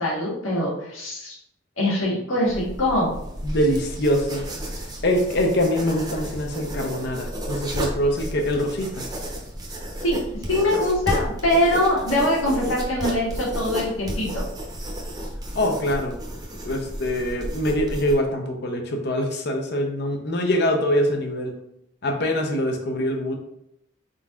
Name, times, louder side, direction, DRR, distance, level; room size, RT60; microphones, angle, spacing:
voice 1, 0.0-1.3 1.8-3.1 10.0-10.2 10.5-14.4, left 1 dB, 90° left, -4 dB, 1.6 m, -23 dB
sound 1, 2.4-18.1, equal, 20° right, 0.7 m, -32 dB
voice 2, 3.4-4.4 5.0-9.0 15.5-16.1 16.6-21.5 22.0-23.4, equal, 55° left, 3 dB, 0.7 m, -24 dB
4.3 x 3.8 x 2.4 m, 0.76 s
head